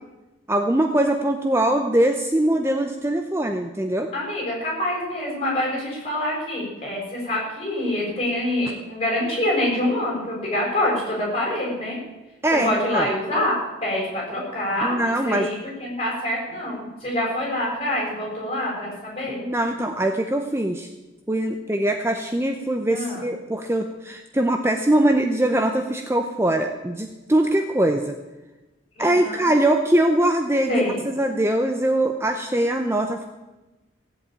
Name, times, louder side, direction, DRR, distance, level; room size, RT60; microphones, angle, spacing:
voice 1, 0.5-4.1 12.4-13.1 14.8-15.5 19.4-20.9 21.3-28.1 29.0-33.3, right 1 dB, 15° right, 5 dB, 0.7 m, -22 dB
voice 2, 4.1-12.0 12.6-19.4 22.9-23.2 28.9-29.5 30.7-31.0, left 1 dB, 30° left, -3 dB, 6.6 m, -26 dB
16.5 x 8.1 x 8.9 m, 1.1 s
head